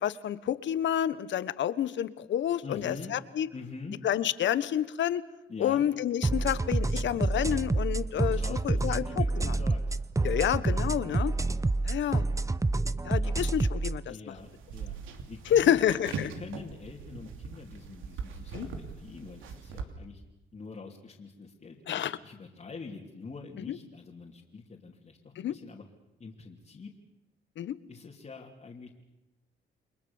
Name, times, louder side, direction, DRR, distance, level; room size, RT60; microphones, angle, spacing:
voice 1, 0.0-3.5 4.0-5.2 5.6-9.0 9.4-9.5 10.2-11.3 11.8-12.3 13.0-14.0 15.5-16.3 18.5-18.7 21.9-22.2 23.7-23.8 25.4-25.5 27.6-27.8, left 10 dB, 70° left, 15 dB, 1.3 m, -29 dB
voice 2, 2.6-3.1 3.5-4.0 5.5-5.8 8.2-10.0 13.1-13.3 14.1-14.9 15.3-20.2 20.5-25.8 26.2-26.9 27.9-28.9, left 4 dB, 35° left, -2 dB, 3.1 m, -45 dB
sound 1, 6.2-14.0, right 2 dB, 15° right, 0.8 m, -28 dB
sound 2, 14.4-19.8, right 5 dB, 85° right, 3.0 m, -41 dB
29.5 x 22.0 x 7.2 m, 0.94 s
cardioid pair, 90°, 20 cm